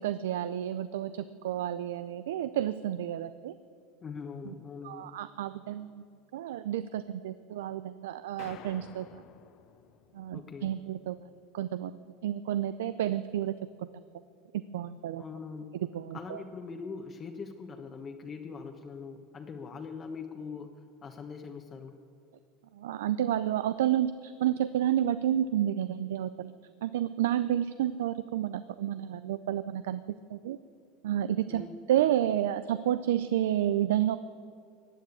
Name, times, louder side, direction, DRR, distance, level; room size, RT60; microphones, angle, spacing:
voice 1, 0.0-3.5 4.5-4.6 4.8-6.0 6.3-9.1 10.1-11.2 11.5-13.5 13.8-13.9 14.5-15.2 15.9-16.4 22.7-26.5 26.8-30.0 30.3-30.6 31.0-31.6 31.9-34.2, right 11 dB, 90° right, 14 dB, 0.4 m, -30 dB
voice 2, 4.0-5.1 10.3-10.7 15.2-15.7 16.1-20.7 21.0-21.9 31.5-31.8, left 5 dB, 30° left, 3 dB, 1.1 m, -42 dB
sound 1, 8.4-10.8, left 9 dB, 55° left, 1.1 m, -51 dB
16.0 x 9.1 x 8.4 m, 2.3 s
supercardioid pair, 110°, 0 cm